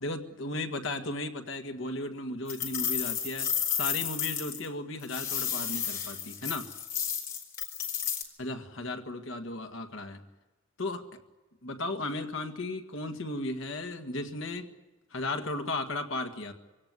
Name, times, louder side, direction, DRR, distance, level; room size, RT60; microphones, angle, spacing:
voice 1, 0.0-6.7 8.4-10.2 10.8-11.0 11.6-14.7 15.1-16.5, left 2 dB, 70° left, 6 dB, 1.9 m, -35 dB
sound 1, 2.5-4.7 5.0-8.2, left 8 dB, 45° left, 3.6 m, -32 dB
24.5 x 17.0 x 9.7 m, 1.2 s
head